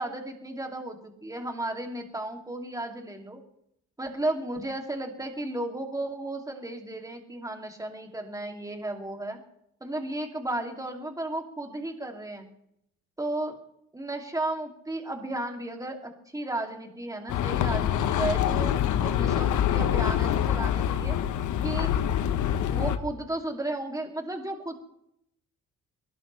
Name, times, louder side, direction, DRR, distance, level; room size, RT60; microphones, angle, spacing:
voice 1, 0.0-3.4 4.0-9.4 9.8-12.5 13.2-13.5 13.9-21.2 21.6-21.9 22.7-24.7, right 1 dB, 10° right, 2 dB, 2.9 m, -34 dB
sound 1, 17.3-23.0, left 10 dB, 80° left, 1.3 m, -25 dB
22.5 x 18.0 x 3.5 m, 0.75 s
cardioid pair, 90°, 30 cm